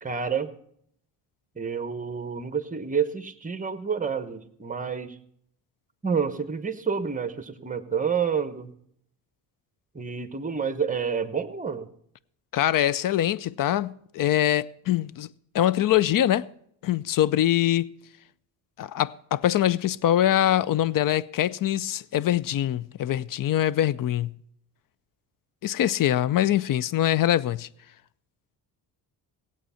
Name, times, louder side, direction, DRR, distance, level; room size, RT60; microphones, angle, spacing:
voice 1, 0.0-0.5 1.6-5.1 6.0-8.7 9.9-11.9, right 6 dB, 20° right, 1.0 m, -29 dB
voice 2, 12.5-15.3 15.5-16.5 16.8-17.9 18.8-24.3 25.6-27.7, left 12 dB, 50° left, 0.5 m, -23 dB
17.0 x 8.3 x 5.7 m
cardioid pair, 95°, 44 cm